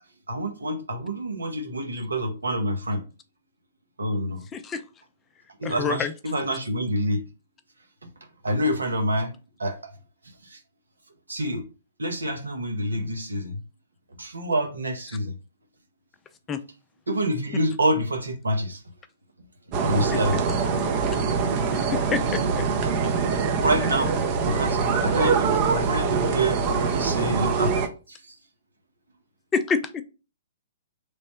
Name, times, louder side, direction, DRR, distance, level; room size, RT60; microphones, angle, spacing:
voice 1, 0.3-3.0 4.0-4.4 5.6-7.2 8.4-9.8 10.4-10.6 11.3-11.6 12.0-13.5 14.2-15.3 17.1-18.8 19.8-20.6 23.6-26.7 27.0-28.4, right 1 dB, 85° right, 0.8 m, -27 dB
voice 2, 4.5-4.8 5.6-6.1 16.5-16.6 20.1-20.2 21.7-22.6 29.5-30.0, left 6 dB, 20° left, 0.4 m, -27 dB
sound 1, 19.7-27.9, right 5 dB, 35° right, 0.5 m, -24 dB
3.2 x 2.1 x 4.2 m
hypercardioid pair, 125°, 0 cm